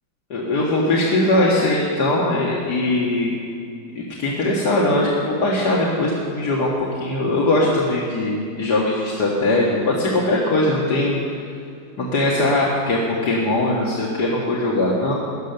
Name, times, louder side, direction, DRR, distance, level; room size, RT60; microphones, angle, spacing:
voice 1, 0.3-3.3 4.0-6.7 7.0-11.1 12.0-15.1, left 2 dB, 60° left, -5 dB, 2.3 m, -20 dB
17.5 x 11.5 x 6.7 m, 2.4 s
omnidirectional pair, 2.0 m